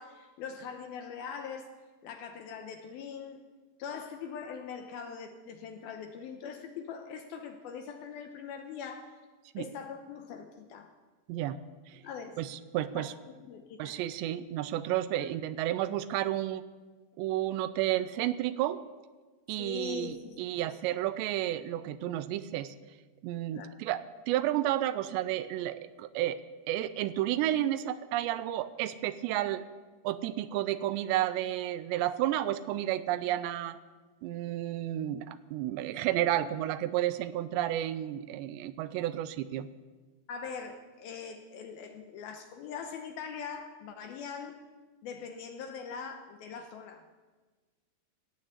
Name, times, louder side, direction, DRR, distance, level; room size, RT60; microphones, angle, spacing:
voice 1, 0.0-1.7 2.0-3.4 3.8-9.2 9.6-10.9 12.0-12.4 12.9-14.0 15.2-15.3 19.6-20.4 20.6-20.8 23.5-23.7 36.4-36.5 40.3-44.6 45.0-47.0, left 6 dB, 75° left, 5 dB, 2.4 m, -42 dB
voice 2, 11.3-11.6 11.9-12.0 12.4-13.1 13.8-16.6 17.2-18.8 19.5-22.7 23.2-26.4 26.7-29.6 30.0-33.8 34.2-39.7, right 13 dB, 85° right, 14 dB, 2.8 m, -31 dB
17.0 x 8.7 x 8.1 m, 1.3 s
omnidirectional pair, 5.1 m